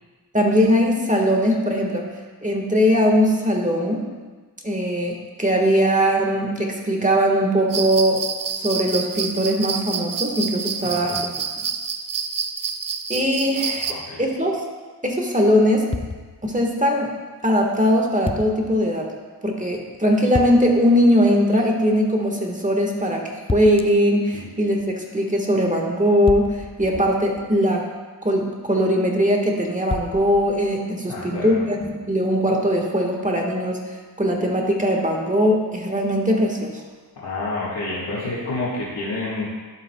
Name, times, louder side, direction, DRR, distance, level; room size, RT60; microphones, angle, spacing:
voice 1, 0.3-2.1 2.4-4.1 4.6-8.2 8.5-11.3 13.1-14.5 15.0-15.9 16.4-17.1 17.4-19.1 19.4-27.9 28.2-33.8 34.2-36.8, equal, 20° right, 0 dB, 1.5 m, -20 dB
sound 1, 7.7-13.9, right 6 dB, 55° right, 0.6 m, -28 dB
voice 2, 10.8-11.2 13.9-14.2 24.3-24.4 31.0-31.6 37.2-39.4, left 2 dB, 75° left, -9 dB, 1.8 m, -29 dB
sound 2, 15.9-16.7 18.3-18.8 20.3-20.9 23.5-24.1 26.3-27.7 29.9-30.7, left 3 dB, 15° left, 0.4 m, -31 dB
11.5 x 7.4 x 2.3 m, 1.4 s
cardioid pair, 50°, 41 cm